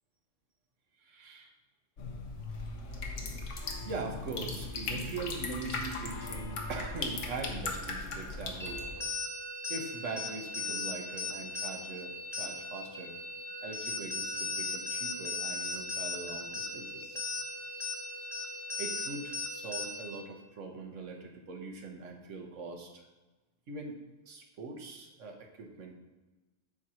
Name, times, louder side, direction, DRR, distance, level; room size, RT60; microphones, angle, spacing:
voice 1, 1.0-1.5 3.8-8.8 9.7-13.2 13.6-17.3 18.8-23.1 23.7-24.0 24.3-25.9, right 3 dB, 85° right, 2 dB, 1.3 m, -42 dB
sound 1, 2.0-8.8, left 3 dB, 75° left, 1.2 m, -38 dB
sound 2, 3.6-9.1, left 3 dB, 50° left, 0.5 m, -48 dB
sound 3, 8.6-20.2, left 2 dB, 5° left, 0.6 m, -38 dB
8.5 x 2.9 x 6.0 m, 1.2 s
omnidirectional pair, 1.3 m